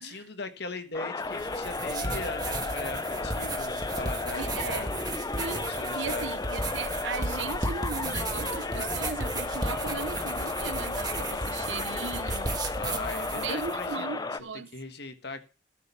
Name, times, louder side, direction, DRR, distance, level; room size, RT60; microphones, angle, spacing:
voice 1, 0.0-4.9 5.6-6.3 12.8-14.3 14.7-15.4, left 3 dB, 60° left, 1.7 m, -39 dB
sound 1, 0.9-14.4, left 3 dB, 20° left, 0.5 m, -34 dB
sound 2, 1.2-13.9, right 2 dB, 20° right, 1.5 m, -35 dB
voice 2, 4.4-4.9 5.4-12.6 13.3-14.7, right 5 dB, 85° right, 0.9 m, -37 dB
13.5 x 6.6 x 7.1 m
head